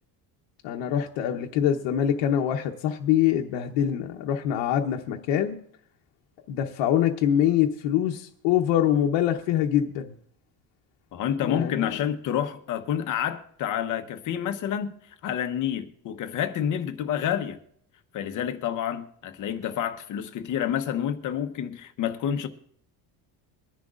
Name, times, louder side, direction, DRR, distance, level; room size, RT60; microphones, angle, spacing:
voice 1, 0.6-5.6 6.5-10.1 11.4-11.9, left 10 dB, 80° left, 1.0 m, -24 dB
voice 2, 11.1-15.0 15.2-17.6 18.1-22.5, left 9 dB, 45° left, 1.0 m, -29 dB
23.5 x 10.5 x 2.5 m
cardioid pair, 160°, 43 cm